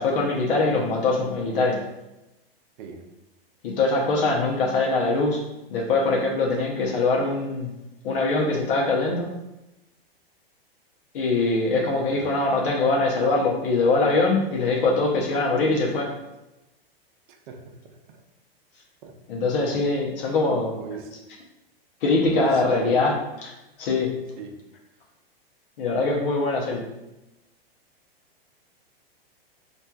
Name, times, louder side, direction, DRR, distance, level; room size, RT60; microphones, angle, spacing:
voice 1, 0.0-1.9 3.6-5.4 5.7-7.8 8.0-9.3 11.1-16.2 19.3-20.8 22.0-23.5 23.8-24.2 25.8-26.9, left 3 dB, 65° left, -2 dB, 0.7 m, -23 dB
voice 2, 17.3-18.0 19.0-19.1 20.8-21.1 22.3-23.0 24.4-24.5, right 6 dB, 55° right, 3 dB, 0.7 m, -36 dB
4.3 x 2.5 x 2.3 m, 0.96 s
hypercardioid pair, 115°, 30 cm